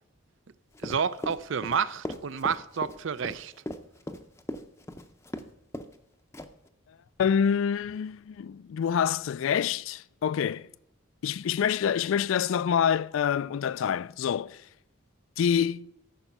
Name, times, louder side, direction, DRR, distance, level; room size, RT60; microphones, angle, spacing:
Run, 0.8-5.5 5.7-6.0 6.3-6.7, left 1 dB, 15° left, 0.6 m, -37 dB
voice 1, 0.8-3.5, right 6 dB, 65° right, 0.5 m, -30 dB
voice 2, 7.2-10.7 11.2-14.6 15.4-15.9, left 8 dB, 70° left, 0.3 m, -26 dB
14.0 x 5.5 x 5.9 m
head